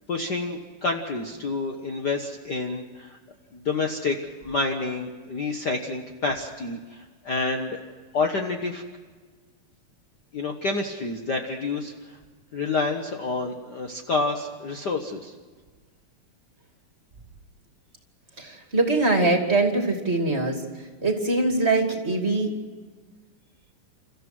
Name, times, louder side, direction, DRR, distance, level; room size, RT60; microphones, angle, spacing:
voice 1, 0.1-3.2 3.5-4.2 4.4-7.8 8.1-8.8 10.3-12.2 12.5-15.3, left 3 dB, 80° left, 3 dB, 0.9 m, -28 dB
voice 2, 18.4-20.6 21.0-22.5, right 2 dB, 20° right, 3 dB, 2.4 m, -23 dB
30.0 x 14.5 x 6.1 m, 1.5 s
omnidirectional pair, 4.0 m